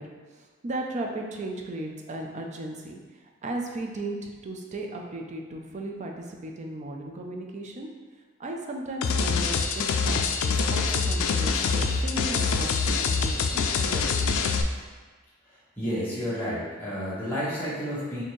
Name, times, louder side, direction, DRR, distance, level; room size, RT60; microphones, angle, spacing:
voice 1, 0.0-7.9 8.4-14.3, right 2 dB, 35° right, 1 dB, 0.4 m, -36 dB
sound 1, 9.0-14.6, left 5 dB, 80° left, 0.3 m, -25 dB
voice 2, 15.8-18.2, equal, 10° left, -11 dB, 1.4 m, -30 dB
4.2 x 2.7 x 3.1 m, 1.4 s
head